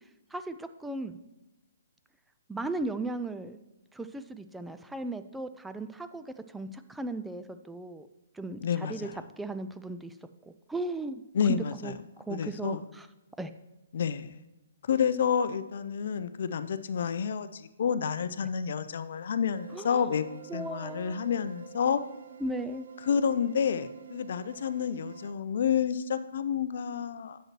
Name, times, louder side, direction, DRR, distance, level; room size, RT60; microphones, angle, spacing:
voice 1, 0.3-1.2 2.5-3.6 3.9-8.1 8.3-9.1 9.4-10.1 10.4-11.2 11.5-13.1 13.4-13.5 19.7-20.1 20.5-21.3 22.4-22.9, right 2 dB, 5° right, 10 dB, 0.3 m, -37 dB
voice 2, 8.6-9.1 11.3-11.9 12.3-12.8 13.9-14.4 14.9-20.3 20.5-22.0 23.1-27.4, left 7 dB, 55° left, 12 dB, 0.5 m, -29 dB
sound 1, 19.5-25.3, right 9 dB, 65° right, 0.6 m, -49 dB
8.9 x 7.3 x 3.0 m, 1.0 s
figure-of-eight pair, 130°, 0 cm